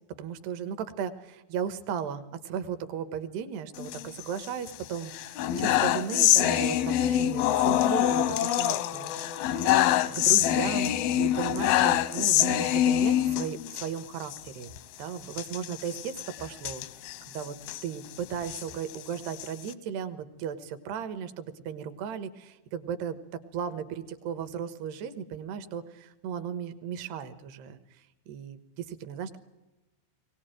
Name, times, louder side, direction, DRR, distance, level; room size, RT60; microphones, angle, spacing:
voice 1, 0.2-9.7 10.1-14.7 15.0-17.6 17.8-23.2 23.5-29.4, right 8 dB, 70° right, 11 dB, 3.1 m, -36 dB
sound 1, 3.8-4.7 5.1-13.9 14.2-14.4 14.6-14.8 15.3-17.8 18.3-19.7, left 12 dB, 80° left, 2.3 m, -25 dB
22.0 x 18.5 x 9.1 m, 1.1 s
omnidirectional pair, 5.5 m